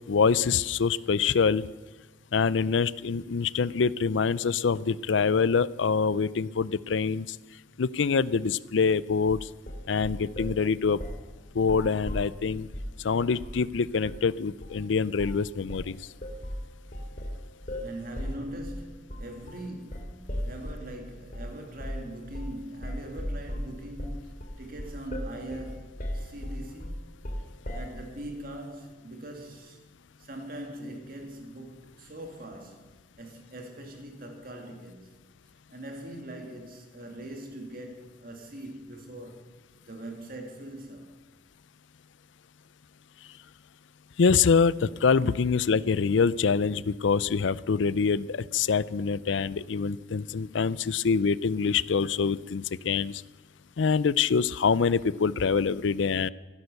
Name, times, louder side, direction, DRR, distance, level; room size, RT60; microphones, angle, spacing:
voice 1, 0.1-1.6 2.3-7.4 7.8-9.5 9.9-11.0 11.5-12.7 13.0-16.0 44.2-53.2 53.8-56.3, left 5 dB, 80° left, 0.5 m, -25 dB
sound 1, 9.3-10.6 11.0-11.3 11.6-13.0 13.4-13.7 14.0-14.2 14.6-14.9 15.2-15.4 15.7-20.9 21.3-21.5 21.8-22.1 22.3-22.6 22.8-28.0, equal, 45° left, 2.5 m, -36 dB
voice 2, 17.8-27.0 27.7-29.8 30.2-32.9 33.2-35.1 35.7-39.6 39.8-41.2, right 1 dB, 50° right, 2.1 m, -41 dB
15.5 x 11.5 x 6.6 m
head